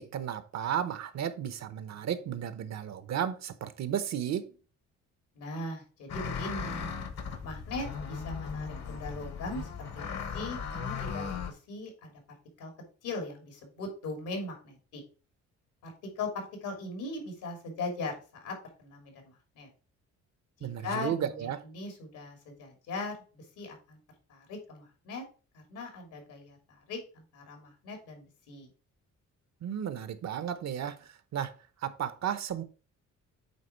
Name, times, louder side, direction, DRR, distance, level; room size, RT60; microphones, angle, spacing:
voice 1, 0.0-4.5 20.6-21.6 29.6-31.5 31.8-32.6, right 9 dB, 60° right, 0.9 m, -34 dB
voice 2, 5.3-6.9 7.4-9.7 9.9-12.1 12.6-12.7 13.0-15.0 15.8-19.7 20.6-24.0 24.3-25.2 25.5-28.7, left 2 dB, 85° left, 3.0 m, -40 dB
sound 1, 6.1-11.5, left 6 dB, 60° left, 1.2 m, -37 dB
8.4 x 3.7 x 4.5 m
cardioid pair, 90°, 30 cm